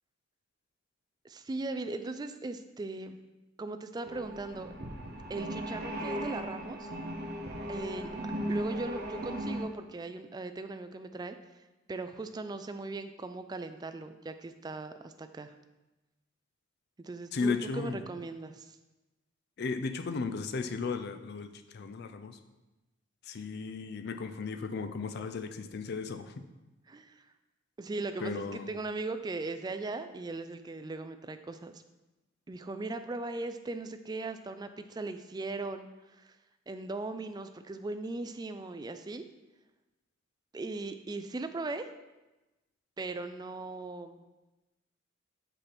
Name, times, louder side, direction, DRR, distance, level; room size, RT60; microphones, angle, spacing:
voice 1, 1.2-3.2 3.6-4.7 5.3-6.9 7.7-8.1 8.5-11.4 11.9-15.5 17.0-18.8 26.9-27.2 27.8-31.8 32.5-35.9 36.2-36.4 36.7-39.2 40.5-41.9 43.0-44.2, right 3 dB, 20° right, 9 dB, 0.3 m, -38 dB
sound 1, 4.0-9.6, equal, 55° right, 0.9 m, -37 dB
voice 2, 17.3-18.0 19.6-22.4 23.3-26.5 28.2-28.7, left 4 dB, 55° left, 10 dB, 0.4 m, -35 dB
5.9 x 5.4 x 4.2 m, 1.1 s
head